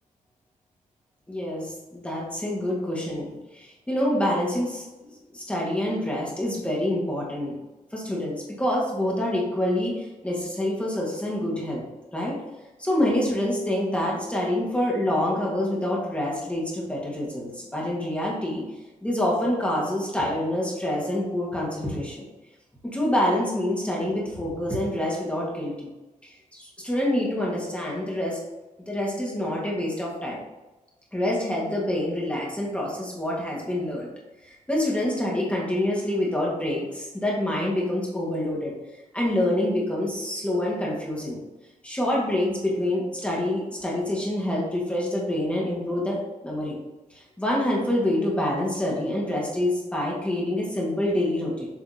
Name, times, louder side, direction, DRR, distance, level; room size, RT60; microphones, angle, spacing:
voice 1, 1.3-7.5 7.9-11.8 12.1-12.4 12.8-18.6 19.0-22.3 22.9-25.9 26.2-28.4 28.9-30.4 31.1-34.1 34.4-38.7 39.1-41.4 41.8-46.8 47.1-51.7, left 1 dB, 10° left, -4 dB, 1.7 m, -26 dB
7.5 x 3.3 x 4.0 m, 1.1 s
wide cardioid pair, 125°, 14 cm